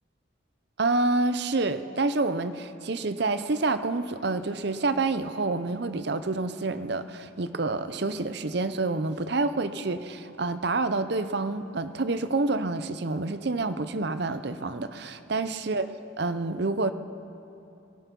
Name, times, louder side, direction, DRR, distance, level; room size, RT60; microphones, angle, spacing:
voice 1, 0.8-15.9 16.2-16.9, right 3 dB, 55° right, 11 dB, 0.7 m, -28 dB
22.5 x 12.0 x 5.4 m, 2.8 s
head